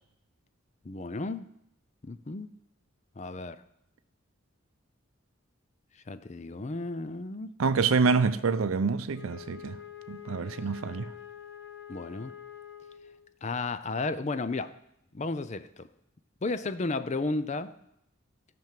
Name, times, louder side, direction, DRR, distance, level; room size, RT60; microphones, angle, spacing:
voice 1, 0.9-1.4 2.0-2.5 3.2-3.6 6.1-7.5 11.9-12.3 13.4-14.7 15.1-15.9 16.4-17.7, left 3 dB, 35° left, 0.5 m, -33 dB
voice 2, 7.6-9.8 10.1-11.1, right 4 dB, 90° right, 0.5 m, -26 dB
Wind instrument woodwind instrument, 9.1-13.3, left 10 dB, 60° left, 1.2 m, -46 dB
14.0 x 6.0 x 7.5 m
head